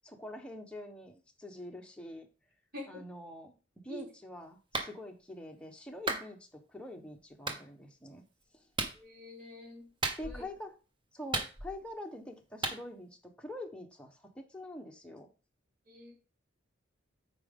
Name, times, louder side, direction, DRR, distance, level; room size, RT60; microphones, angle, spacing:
voice 1, 0.0-2.3 2.9-3.5 3.8-8.2 8.5-8.7 10.2-10.7 11.1-15.3, left 1 dB, 5° left, 2 dB, 1.1 m, -45 dB
Clapping, 4.7-4.9 6.1-6.3 7.5-7.6 8.8-9.0 10.0-10.5 11.3-11.9 12.6-12.8, right 3 dB, 25° right, 1.0 m, -34 dB
voice 2, 8.9-9.9 10.2-10.4 15.9-16.1, left 1 dB, 50° right, -2 dB, 4.0 m, -46 dB
8.8 x 5.1 x 3.7 m, 0.34 s
head